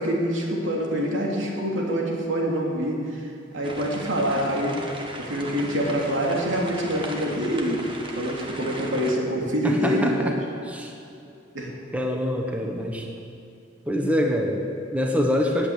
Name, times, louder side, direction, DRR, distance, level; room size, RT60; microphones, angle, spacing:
voice 1, 0.0-4.8 5.2-10.3 11.5-11.7, equal, 80° right, -2 dB, 3.2 m, -26 dB
sound 1, 3.6-9.2, right 1 dB, 25° right, 1.5 m, -38 dB
voice 2, 9.6-10.1 10.6-10.9 11.9-13.1 13.9-15.7, equal, 10° right, 1 dB, 1.2 m, -25 dB
18.0 x 8.6 x 8.2 m, 2.6 s
head